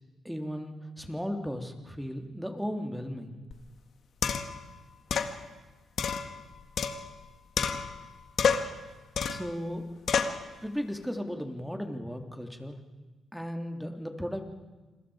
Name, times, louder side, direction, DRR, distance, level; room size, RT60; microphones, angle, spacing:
voice 1, 0.2-3.4 9.3-9.8 10.6-12.8 13.3-14.4, equal, ahead, 5 dB, 3.3 m, -35 dB
sound 1, 3.5-3.6 4.2-4.6 5.1-5.3 6.0-7.2 7.6-8.1 8.4-8.8 9.2-9.5 10.1-10.4, left 6 dB, 65° left, 1.7 m, -29 dB
28.5 x 21.5 x 5.1 m, 1.2 s
cardioid pair, 70°, 0 cm